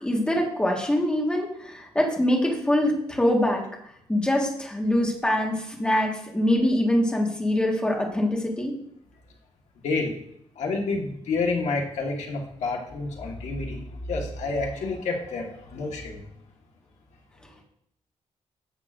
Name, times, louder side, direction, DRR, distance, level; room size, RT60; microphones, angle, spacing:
voice 1, 0.0-3.6 4.1-8.7, left 1 dB, 10° left, -1 dB, 1.6 m, -24 dB
voice 2, 9.8-10.2 10.5-16.3, left 3 dB, 80° left, 0 dB, 1.6 m, -29 dB
11.0 x 7.3 x 2.6 m, 0.72 s
wide cardioid pair, 155°, 12 cm